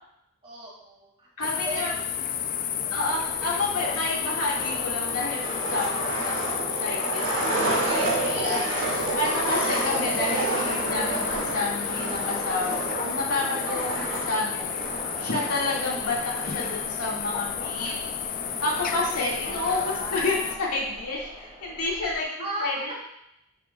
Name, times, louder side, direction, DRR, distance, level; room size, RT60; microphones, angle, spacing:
voice 1, 0.4-1.3 1.7-1.9 2.6-3.1 7.9-9.2 13.7-14.2 19.4-20.8 22.2-22.7, right 1 dB, 25° right, -4 dB, 2.1 m, -37 dB
voice 2, 1.4-1.9 2.9-7.8 8.4-8.6 9.2-13.9 14.3-14.7 15.2-18.0 18.6-23.1, left 2 dB, 80° left, -4 dB, 2.1 m, -30 dB
sound 1, 1.4-20.6, left 9 dB, 40° left, 0.4 m, -32 dB
Skateboard, 3.1-20.1, right 2 dB, 60° right, 1.9 m, -31 dB
sound 2, 9.8-22.3, equal, ahead, 2.1 m, -44 dB
8.7 x 6.1 x 2.4 m, 0.79 s
head